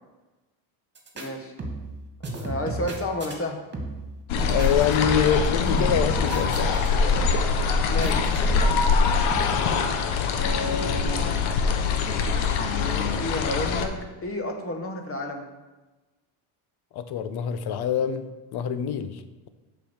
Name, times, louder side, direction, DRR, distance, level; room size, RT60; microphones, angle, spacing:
sound 1, 1.0-1.3 1.6-2.0 2.2-3.4 3.7-4.1 4.4-5.4 5.7-6.9 7.2-7.5 8.0-8.8 9.3-9.6, right 2 dB, 20° right, 2.0 m, -33 dB
voice 1, 1.1-1.5 2.4-3.6 7.8-8.3 10.3-11.2 12.7-13.9 14.2-15.5, left 2 dB, 25° left, 4 dB, 1.6 m, -31 dB
sound 2, 4.3-13.9, left 5 dB, 75° left, 1.2 m, -23 dB
voice 2, 4.5-6.9 16.9-19.5, left 8 dB, 55° left, 11 dB, 0.9 m, -25 dB
7.4 x 5.6 x 7.2 m, 1.1 s
cardioid pair, 115°, 48 cm